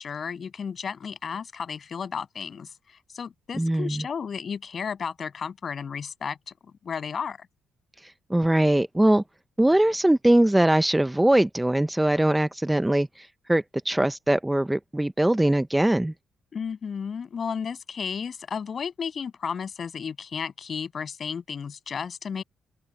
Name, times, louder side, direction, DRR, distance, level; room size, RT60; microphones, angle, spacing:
voice 1, 0.0-6.5 6.8-7.5 16.5-22.4, left 6 dB, 45° left, 7.9 m, -33 dB
voice 2, 3.6-4.0 8.0-9.2 9.6-16.1, right 1 dB, 10° right, 0.6 m, -22 dB
open air
cardioid pair, 90°, 0 cm